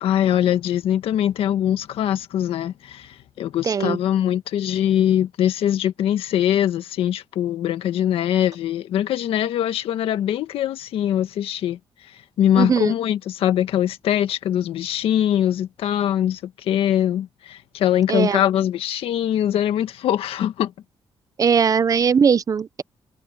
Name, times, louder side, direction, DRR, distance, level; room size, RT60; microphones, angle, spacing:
voice 1, 0.0-11.8 12.4-20.7, left 11 dB, 85° left, 1.7 m, -22 dB
voice 2, 3.6-4.0 12.6-12.9 18.1-18.4 21.4-22.8, right 6 dB, 40° right, 0.7 m, -19 dB
cardioid pair, 100°, 9 cm